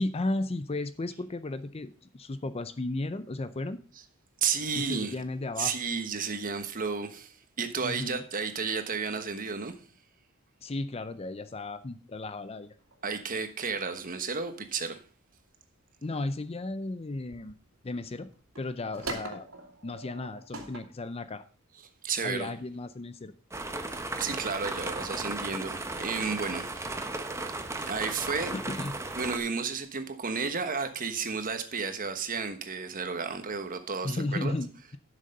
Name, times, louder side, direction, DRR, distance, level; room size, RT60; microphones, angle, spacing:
voice 1, 0.0-3.8 4.8-5.8 7.8-8.2 10.6-12.7 16.0-17.5 17.8-18.3 18.6-19.5 19.8-21.4 22.2-23.3 28.5-29.0 34.0-35.0, left 2 dB, 25° left, 0.5 m, -34 dB
voice 2, 4.4-5.1 5.6-9.7 13.0-15.0 22.0-22.5 24.2-26.9 27.8-28.5 29.2-34.6, right 5 dB, 40° right, 1.2 m, -32 dB
sound 1, 12.8-13.4 13.7-14.0 15.0-15.1 15.3-15.4 15.8-15.9 16.3-16.7 17.1-17.5 18.1-20.8, right 2 dB, 65° right, 2.3 m, -42 dB
sound 2, 23.5-29.4, right 2 dB, 15° right, 0.9 m, -35 dB
11.0 x 6.6 x 5.3 m
head